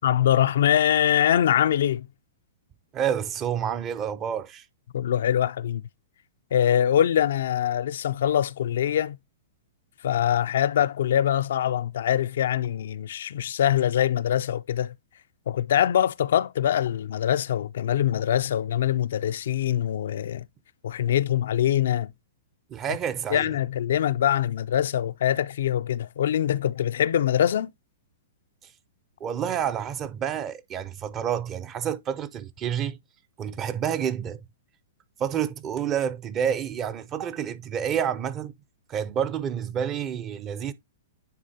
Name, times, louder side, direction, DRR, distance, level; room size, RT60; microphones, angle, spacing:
voice 1, 0.0-2.1 4.9-5.8 6.5-9.2 10.0-14.9 15.5-20.4 20.8-22.1 23.3-27.7, left 10 dB, 70° left, 0.3 m, -23 dB
voice 2, 2.9-4.6 22.7-23.5 29.2-33.0 33.4-34.4 35.2-38.5 38.9-40.7, right 8 dB, 25° right, 0.6 m, -29 dB
9.4 x 3.7 x 2.7 m
hypercardioid pair, 135°, 0 cm